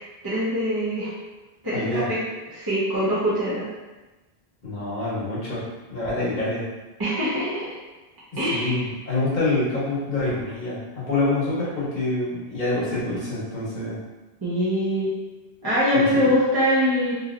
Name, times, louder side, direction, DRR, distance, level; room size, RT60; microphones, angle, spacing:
voice 1, 0.2-1.1 1.6-2.2 2.5-3.7 7.0-7.8 8.4-8.8 14.4-15.2 15.6-17.1, equal, 25° right, -11 dB, 0.7 m, -23 dB
voice 2, 1.7-2.1 4.6-5.6 5.9-6.6 8.3-14.0 15.9-16.3, left 2 dB, 45° left, -8 dB, 1.2 m, -26 dB
2.8 x 2.8 x 2.5 m, 1.1 s
omnidirectional pair, 1.1 m